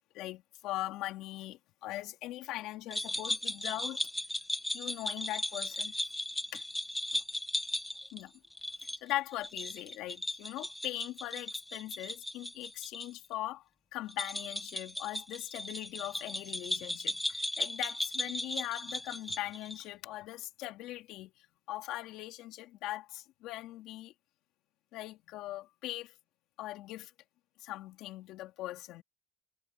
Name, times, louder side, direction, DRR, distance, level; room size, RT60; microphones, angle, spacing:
voice 1, 0.1-4.0 4.7-5.9 6.5-6.6 7.1-7.2 8.1-8.3 9.0-13.6 13.9-24.1 24.9-26.1 26.6-27.1 27.6-29.0, left 16 dB, 80° left, 3.2 m, -40 dB
sound 1, 2.9-13.1 13.3-13.4 14.1-19.8, left 1 dB, 5° left, 1.4 m, -37 dB
supercardioid pair, 75°, 0 cm